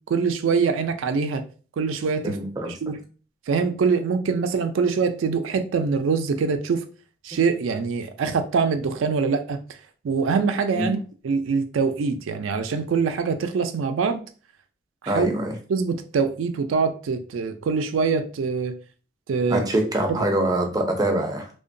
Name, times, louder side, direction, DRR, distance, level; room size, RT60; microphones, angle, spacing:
voice 1, 0.1-1.4 1.8-2.4 2.6-3.0 3.5-6.8 7.2-9.6 10.0-11.0 11.2-14.2 15.0-15.3 15.7-18.8 19.3-19.6 20.4-20.5, right 5 dB, 85° right, 0.4 m, -24 dB
voice 2, 2.2-2.8 10.8-11.0 15.1-15.6 19.5-21.5, right 1 dB, 20° right, 0.4 m, -24 dB
2.8 x 2.1 x 2.5 m
head